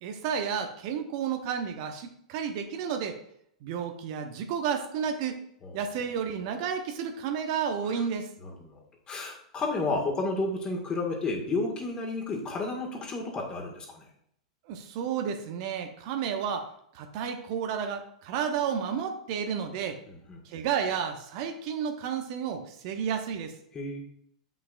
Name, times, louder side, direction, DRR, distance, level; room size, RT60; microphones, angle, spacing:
voice 1, 0.0-3.2 3.6-5.4 5.7-8.3 14.7-20.0 20.4-23.6, right 7 dB, 50° right, 6 dB, 0.8 m, -31 dB
voice 2, 8.4-14.0 20.1-20.4 23.7-24.0, left 3 dB, 25° left, 0 dB, 1.8 m, -32 dB
8.0 x 5.8 x 2.5 m, 0.70 s
figure-of-eight pair, 95°, 3 cm